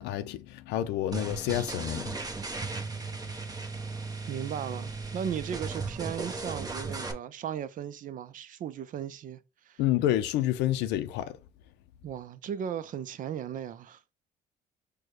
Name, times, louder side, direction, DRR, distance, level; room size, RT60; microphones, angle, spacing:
voice 1, 0.0-2.2 9.8-11.4, left 13 dB, 90° left, 0.5 m, -29 dB
sound 1, 1.1-7.1, right 3 dB, 20° right, 0.9 m, -36 dB
voice 2, 4.3-9.4 9.7-9.8 12.0-14.0, right 9 dB, 50° right, 0.6 m, -36 dB
4.6 x 2.3 x 4.6 m
cardioid pair, 110°, 17 cm